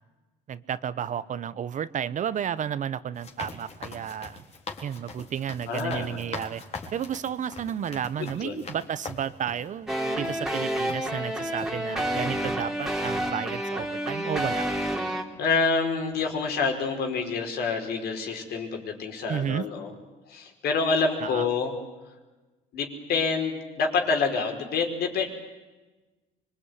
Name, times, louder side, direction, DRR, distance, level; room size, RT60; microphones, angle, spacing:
voice 1, 0.5-4.4 4.8-6.6 6.9-14.6 19.3-19.6 21.2-21.4, right 9 dB, 50° right, 16 dB, 1.0 m, -32 dB
sound 1, 3.1-9.7 10.2-10.4 10.9-11.3 11.6-11.7, left 4 dB, 40° left, 4.0 m, -41 dB
voice 2, 5.7-6.2 8.2-8.7 15.1-19.9 20.3-21.7 22.7-25.4, left 4 dB, 70° left, 4 dB, 5.1 m, -27 dB
sound 2, 9.9-15.2, right 1 dB, 5° right, 3.0 m, -29 dB
25.0 x 22.5 x 9.7 m, 1.2 s
cardioid pair, 110°, 17 cm